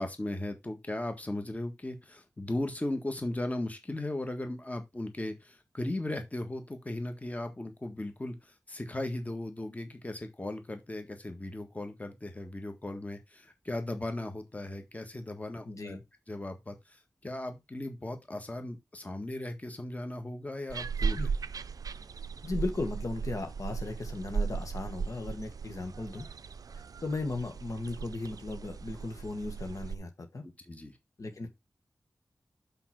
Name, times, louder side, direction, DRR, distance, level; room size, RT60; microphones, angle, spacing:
voice 1, 0.0-16.0 16.3-21.3 30.4-31.0, left 1 dB, 25° left, 1.7 m, -37 dB
voice 2, 15.6-16.0 21.2-21.3 22.4-26.3 27.0-30.4 31.2-31.5, left 2 dB, 65° left, 1.7 m, -36 dB
sound 1, 20.7-30.0, right 5 dB, 80° right, 0.5 m, -37 dB
5.8 x 5.2 x 6.0 m
wide cardioid pair, 65°, 6 cm